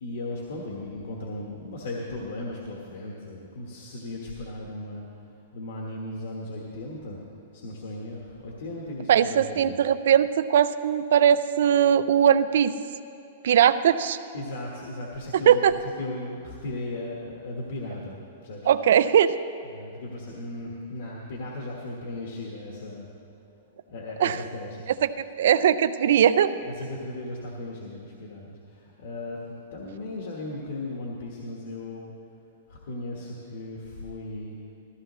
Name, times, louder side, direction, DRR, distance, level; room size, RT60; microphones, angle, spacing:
voice 1, 0.0-5.1 5.3-7.3 7.5-9.8 14.3-18.2 18.4-18.7 19.6-23.1 23.9-24.9 26.6-32.1 32.7-34.6, left 2 dB, 60° left, -2 dB, 1.3 m, -36 dB
voice 2, 9.1-12.7 13.4-14.2 15.5-15.7 18.7-19.3 24.2-24.4 25.0-25.1 25.4-26.5, right 9 dB, 55° right, 13 dB, 0.4 m, -20 dB
15.5 x 14.5 x 3.1 m, 2.6 s
supercardioid pair, 180°, 0 cm